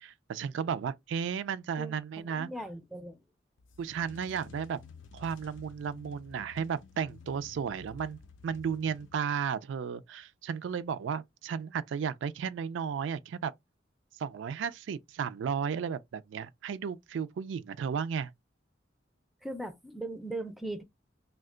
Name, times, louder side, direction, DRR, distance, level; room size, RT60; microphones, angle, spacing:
voice 1, 0.0-2.5 3.8-4.8 5.1-13.5 14.2-18.3, right 7 dB, 75° right, 0.3 m, -34 dB
voice 2, 1.8-3.2 19.4-20.8, right 1 dB, ahead, 0.4 m, -39 dB
sound 1, 3.6-9.6, left 4 dB, 80° left, 0.5 m, -52 dB
2.7 x 2.2 x 3.6 m
head